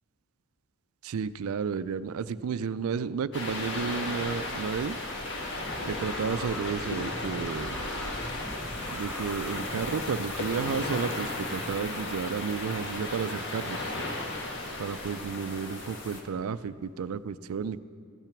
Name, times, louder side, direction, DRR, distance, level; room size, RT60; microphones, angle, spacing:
voice 1, 1.0-5.0 5.9-7.8 8.9-13.9 14.8-17.8, right 6 dB, 80° right, 16 dB, 0.4 m, -32 dB
sound 1, 3.3-16.2, left 2 dB, 55° left, 1.4 m, -35 dB
sound 2, 5.6-12.4, equal, ahead, 0.7 m, -43 dB
14.0 x 9.0 x 5.9 m, 2.3 s
head